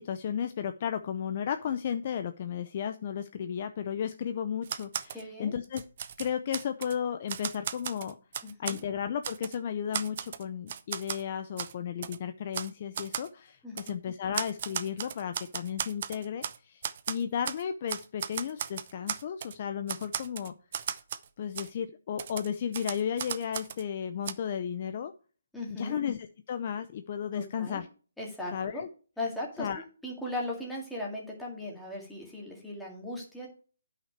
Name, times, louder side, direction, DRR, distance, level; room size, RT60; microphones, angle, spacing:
voice 1, 0.0-5.8 6.2-8.1 8.6-20.5 21.4-25.1 25.8-27.9 28.5-28.9 29.6-29.8, left 8 dB, 30° left, 9 dB, 0.5 m, -34 dB
Typewriter, 4.6-5.2 5.6-7.0 7.3-8.8 9.2-9.6 9.9-11.2 11.6-11.7 12.0-12.2 12.5-12.7 13.0-13.3 13.8-13.9 14.3-16.6 16.8-17.6 17.9-19.6 19.9-21.3 21.6-21.7 22.2-23.8 24.3-24.4, right 8 dB, 35° right, 0.6 m, -36 dB
voice 2, 5.1-5.6 8.4-8.8 13.6-13.8 25.5-26.0 27.3-27.8 28.2-28.8 29.2-33.5, left 1 dB, ahead, -4 dB, 2.0 m, -38 dB
9.7 x 5.8 x 4.5 m, 0.38 s
hypercardioid pair, 170°, 0 cm